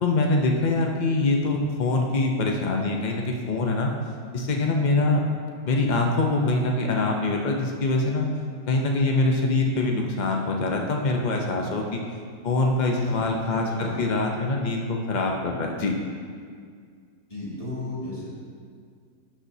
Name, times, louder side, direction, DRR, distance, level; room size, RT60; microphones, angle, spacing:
voice 1, 0.0-3.9 4.3-5.2 5.6-8.3 8.7-12.0 12.4-15.9, left 2 dB, 90° left, 1 dB, 0.4 m, -24 dB
voice 2, 13.5-14.0 17.3-18.3, left 2 dB, 20° left, -8 dB, 2.0 m, -34 dB
12.0 x 6.1 x 2.7 m, 2.1 s
omnidirectional pair, 1.8 m